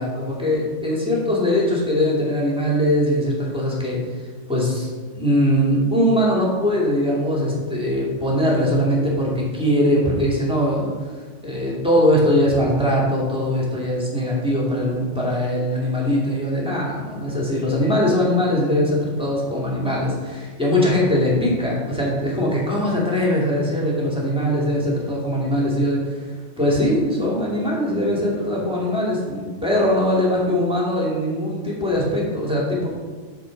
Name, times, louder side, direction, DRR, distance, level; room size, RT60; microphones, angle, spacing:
voice 1, 0.0-4.0 4.5-4.9 5.1-10.9 11.4-32.9, equal, 5° right, -5 dB, 2.5 m, -21 dB
12.5 x 4.7 x 5.2 m, 1.5 s
omnidirectional pair, 1.3 m